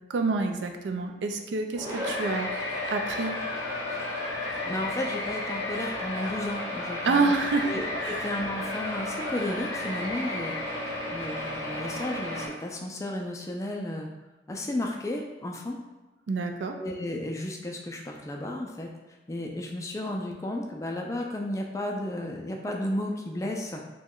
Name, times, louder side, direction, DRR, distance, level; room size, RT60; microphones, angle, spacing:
voice 1, 0.1-3.4 7.0-7.7 8.0-8.2 16.3-16.8, right 3 dB, 80° right, 5 dB, 0.4 m, -28 dB
sound 1, 1.7-12.5, left 1 dB, 20° right, 0.7 m, -33 dB
sound 2, 2.0-10.6, left 2 dB, 90° left, 0.5 m, -39 dB
voice 2, 4.6-7.3 7.6-14.1 14.5-15.8 16.7-18.9 19.3-23.8, left 1 dB, 15° left, 1 dB, 0.3 m, -33 dB
3.0 x 2.2 x 3.6 m, 1.1 s
head